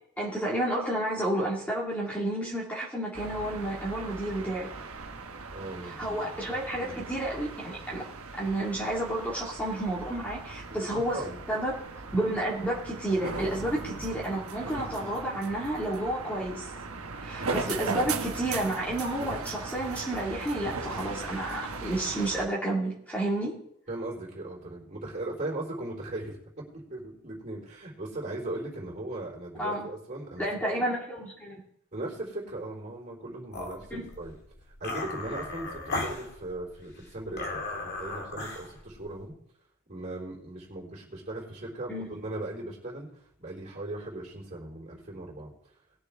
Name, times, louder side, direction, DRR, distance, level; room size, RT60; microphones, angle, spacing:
voice 1, 0.2-4.7 5.8-8.0 8.4-11.8 12.1-16.7 17.2-23.6 29.6-29.9 30.4-31.6 33.9-34.1 41.9-42.1, right 1 dB, 5° left, -5 dB, 2.0 m, -31 dB
sound 1, 3.1-22.5, right 4 dB, 75° right, 1.2 m, -38 dB
voice 2, 5.5-7.0 10.7-11.4 23.9-26.4 26.7-30.5 31.9-34.4 34.8-39.3 39.9-45.5, right 2 dB, 35° right, -4 dB, 3.7 m, -38 dB
sound 2, 33.5-39.3, left 2 dB, 50° left, 2.0 m, -37 dB
20.5 x 6.8 x 3.6 m, 0.73 s
head